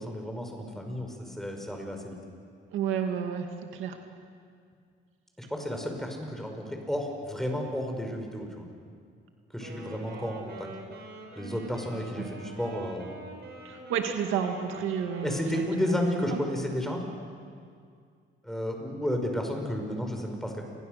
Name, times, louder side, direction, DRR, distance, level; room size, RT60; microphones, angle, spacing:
voice 1, 0.0-2.2 5.4-8.7 9.5-10.7 11.4-13.2 15.2-17.0 18.4-20.6, equal, ahead, 3 dB, 5.5 m, -32 dB
voice 2, 2.7-3.5 3.7-4.0 12.2-12.3 13.6-16.0 16.3-16.4, right 7 dB, 90° right, 5 dB, 2.0 m, -31 dB
Wind instrument woodwind instrument, 9.5-16.8, right 2 dB, 55° right, 6.0 m, -45 dB
28.5 x 21.5 x 6.6 m, 2.2 s
cardioid pair, 90°, 20 cm